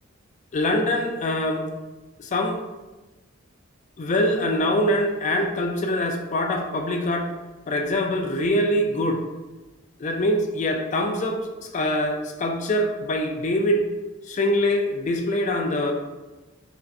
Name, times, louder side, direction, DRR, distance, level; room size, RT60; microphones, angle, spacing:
voice 1, 0.5-1.7 2.2-2.6 4.0-7.3 7.7-9.2 10.0-13.9 14.3-15.9, left 1 dB, 35° left, 3 dB, 0.4 m, -24 dB
4.9 x 2.1 x 2.6 m, 1.2 s
head